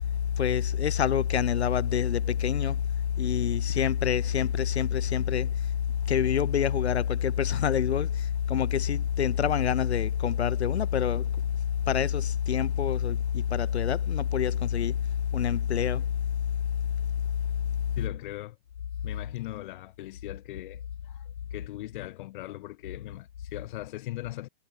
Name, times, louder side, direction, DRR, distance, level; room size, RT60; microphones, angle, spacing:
voice 1, 0.4-2.7 3.2-5.5 6.1-8.1 8.5-11.2 11.9-13.2 13.5-14.9 15.3-16.0, left 9 dB, 80° left, 2.8 m, -26 dB
voice 2, 17.9-18.6 19.0-24.5, left 16 dB, 50° left, 2.9 m, -39 dB
hypercardioid pair, 140°, 32 cm